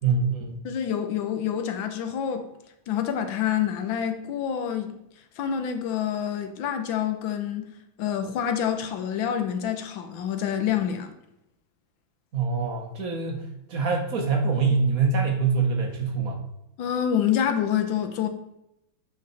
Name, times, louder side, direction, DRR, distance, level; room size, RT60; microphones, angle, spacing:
voice 1, 0.0-0.6 12.3-16.4, right 4 dB, 55° right, 1.3 m, -25 dB
voice 2, 0.6-2.5 2.9-4.9 5.4-7.7 8.0-11.1 16.8-18.3, left 9 dB, 80° left, 1.6 m, -27 dB
8.3 x 4.7 x 4.1 m
omnidirectional pair, 2.1 m